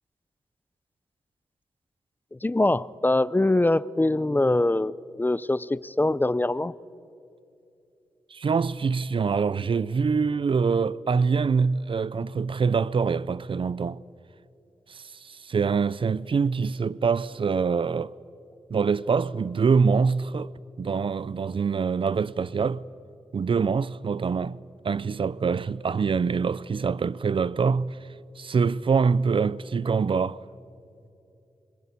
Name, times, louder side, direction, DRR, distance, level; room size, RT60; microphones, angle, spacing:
voice 1, 2.4-6.7, left 2 dB, 20° left, 0.6 m, -23 dB
voice 2, 8.3-14.0 14.9-18.1 18.7-20.5 20.8-22.8 23.3-24.6 24.8-28.0 28.4-30.4, right 5 dB, 55° right, 0.5 m, -25 dB
25.5 x 22.0 x 8.5 m
cardioid pair, 60°, 11 cm